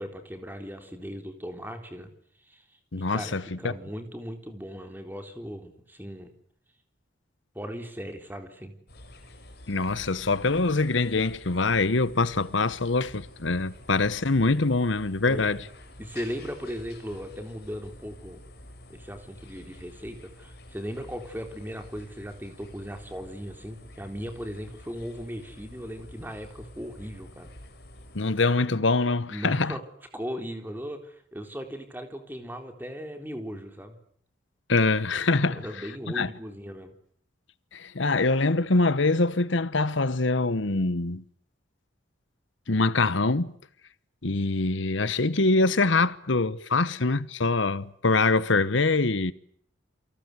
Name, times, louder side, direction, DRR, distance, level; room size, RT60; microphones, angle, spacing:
voice 1, 0.0-2.1 2.4-6.3 7.5-8.7 15.3-15.7 16.0-18.4 18.9-27.5 29.3-29.8 30.1-34.0 35.6-36.9, equal, 10° right, 3.8 m, -38 dB
voice 2, 2.9-3.7 9.7-15.6 28.1-29.7 34.7-35.7 36.1-36.3 37.7-41.2 42.7-43.5 44.2-49.3, left 3 dB, 75° left, 1.1 m, -24 dB
sound 1, 8.9-28.2, left 1 dB, 55° left, 7.2 m, -48 dB
29.0 x 24.0 x 8.3 m
head